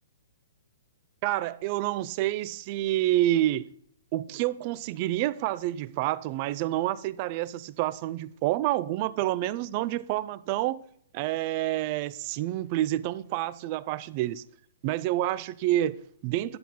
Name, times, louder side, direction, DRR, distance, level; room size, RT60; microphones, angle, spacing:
voice 1, 1.2-3.7 4.1-10.8 11.1-14.4 14.8-16.6, right 14 dB, 35° right, 0.4 m, -28 dB
10.5 x 5.8 x 3.6 m
hypercardioid pair, 145°, 0 cm